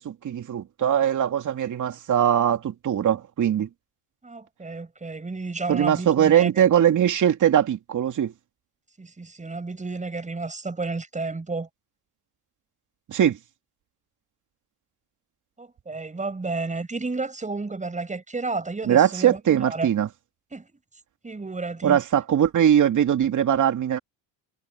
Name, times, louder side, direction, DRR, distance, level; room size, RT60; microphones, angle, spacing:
voice 1, 0.0-3.7 5.7-8.3 13.1-13.4 18.8-20.1 21.8-24.0, right 9 dB, 45° right, 2.9 m, -21 dB
voice 2, 4.2-6.6 9.0-11.7 15.6-19.9 20.5-20.7 21.2-22.0, right 3 dB, 15° right, 6.7 m, -32 dB
supercardioid pair, 95°, 43 cm